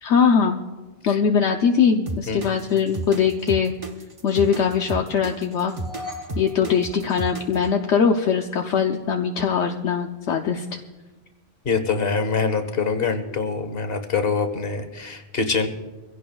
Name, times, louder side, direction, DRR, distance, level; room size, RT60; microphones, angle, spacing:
voice 1, 0.0-0.6 1.1-3.7 4.2-5.7 6.3-10.6, left 6 dB, 75° left, 3 dB, 1.0 m, -21 dB
sound 1, 2.1-7.7, right 2 dB, 30° right, 0.9 m, -32 dB
sound 2, 5.5-7.8, left 2 dB, 70° right, 5.7 m, -40 dB
voice 2, 11.6-15.7, left 4 dB, 55° left, 8 dB, 1.4 m, -24 dB
24.5 x 16.0 x 2.3 m, 1.3 s
omnidirectional pair, 1.2 m